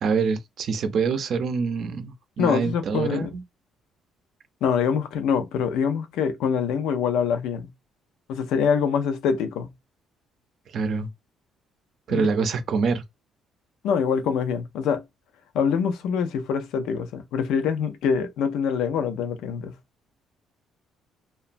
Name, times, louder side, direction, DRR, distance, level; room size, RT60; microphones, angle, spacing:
voice 1, 0.0-3.4 10.7-11.1 12.1-13.0, right 5 dB, 55° right, 0.5 m, -25 dB
voice 2, 2.4-3.3 4.6-7.7 8.3-9.7 12.1-12.3 13.8-15.0 15.5-19.7, left 7 dB, 80° left, 0.5 m, -24 dB
2.9 x 2.2 x 2.5 m
cardioid pair, 135°, 0 cm